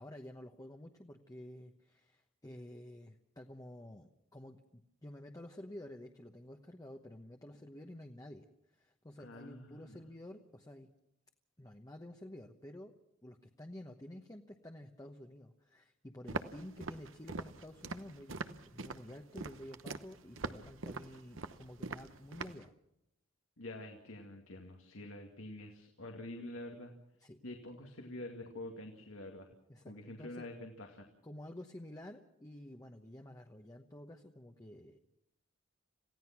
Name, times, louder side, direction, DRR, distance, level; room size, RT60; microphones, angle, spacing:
voice 1, 0.0-10.9 11.6-12.9 13.2-22.7 27.2-27.4 29.7-30.5 31.2-35.0, left 1 dB, 20° left, 3 dB, 1.1 m, -51 dB
voice 2, 9.2-10.0 23.6-26.9 27.4-29.5 29.8-31.1, left 1 dB, 90° left, 2 dB, 2.3 m, -47 dB
Walk footsteps, 16.3-22.7, right 3 dB, 70° right, 1.0 m, -43 dB
27.5 x 16.0 x 6.0 m, 0.85 s
head